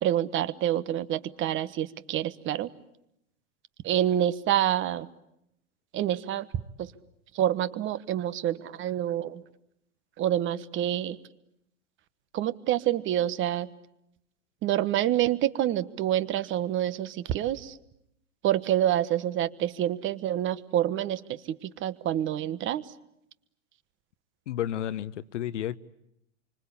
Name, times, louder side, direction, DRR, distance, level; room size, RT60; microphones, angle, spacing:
voice 1, 0.0-2.7 3.8-5.1 5.9-6.5 6.8-6.9 7.3-9.4 10.2-11.2 12.3-13.7 14.6-17.8 18.4-22.8, right 12 dB, 30° right, 1.3 m, -27 dB
voice 2, 24.5-25.8, left 11 dB, 70° left, 1.2 m, -31 dB
27.0 x 25.5 x 8.4 m
hypercardioid pair, 110°, 37 cm